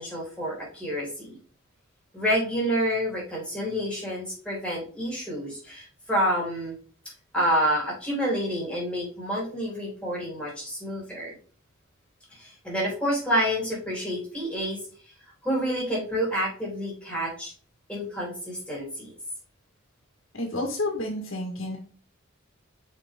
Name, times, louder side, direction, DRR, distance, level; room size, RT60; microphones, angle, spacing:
voice 1, 0.0-1.4 2.1-6.8 7.3-11.3 12.4-14.8 15.4-17.5 17.9-19.1, equal, 5° left, -5 dB, 3.7 m, -28 dB
voice 2, 20.3-21.8, left 1 dB, 75° left, 0 dB, 1.7 m, -30 dB
5.9 x 5.4 x 3.7 m, 0.42 s
head